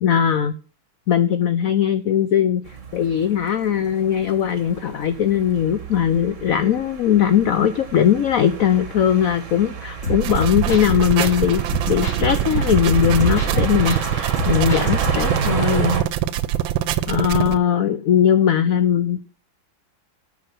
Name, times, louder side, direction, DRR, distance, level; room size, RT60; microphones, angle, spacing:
voice 1, 0.0-0.5 1.1-2.6 2.9-16.0 17.1-19.3, left 9 dB, 70° left, 11 dB, 0.8 m, -19 dB
sound 1, 2.6-16.0, right 5 dB, 40° right, 1.7 m, -30 dB
sound 2, 10.0-11.4 11.7-14.1 14.4-15.4, right 2 dB, 55° left, 3.8 m, -26 dB
sound 3, 10.2-17.6, right 12 dB, 75° right, 1.4 m, -24 dB
9.0 x 5.7 x 6.8 m, 0.36 s
omnidirectional pair, 2.2 m